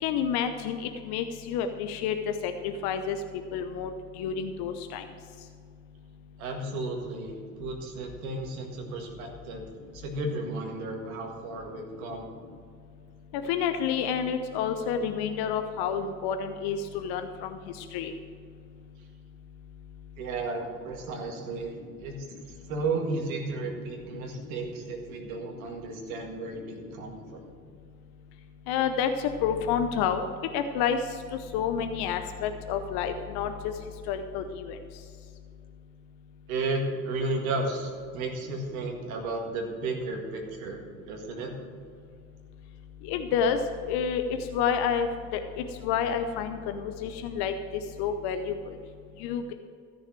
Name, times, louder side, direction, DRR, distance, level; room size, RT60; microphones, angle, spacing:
voice 1, 0.0-3.2 3.5-3.9 4.2-5.0 13.3-18.1 28.7-30.2 30.5-31.0 31.3-33.7 34.1-34.8 43.0-48.8 49.2-49.5, left 7 dB, 65° left, 8 dB, 0.9 m, -29 dB
voice 2, 6.4-9.6 9.9-12.3 20.2-22.3 22.7-27.5 36.5-40.8 41.1-41.5, right 2 dB, 80° right, 2 dB, 1.9 m, -33 dB
14.0 x 6.4 x 7.5 m, 2.3 s
hypercardioid pair, 55°, 41 cm